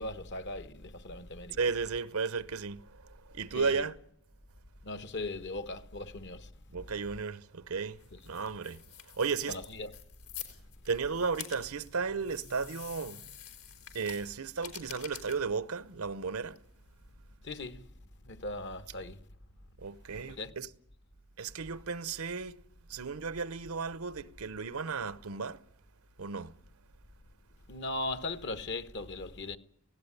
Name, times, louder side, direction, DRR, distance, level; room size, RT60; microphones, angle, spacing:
voice 1, 0.0-1.6 3.5-3.9 4.8-6.5 9.5-9.9 17.4-17.9 18.2-19.2 20.2-20.6 27.7-29.6, left 2 dB, 55° left, 1.2 m, -38 dB
voice 2, 1.5-3.9 6.7-8.8 9.1-9.6 10.9-13.2 13.9-16.6 19.8-20.7 21.4-22.6 22.9-25.6 26.2-26.5, right 5 dB, 80° right, 0.9 m, -34 dB
sound 1, 7.9-17.1, left 10 dB, 75° left, 4.2 m, -49 dB
18.5 x 17.0 x 9.9 m
head